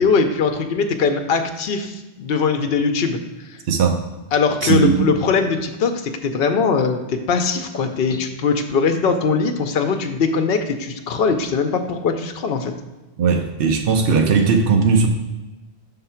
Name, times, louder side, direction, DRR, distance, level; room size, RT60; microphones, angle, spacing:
voice 1, 0.0-3.2 4.3-12.7, left 5 dB, 65° left, 6 dB, 0.8 m, -21 dB
voice 2, 3.7-4.0 4.6-5.1 13.2-15.1, right 5 dB, 65° right, 3 dB, 0.9 m, -17 dB
5.7 x 3.8 x 5.6 m, 1.1 s
omnidirectional pair, 1.1 m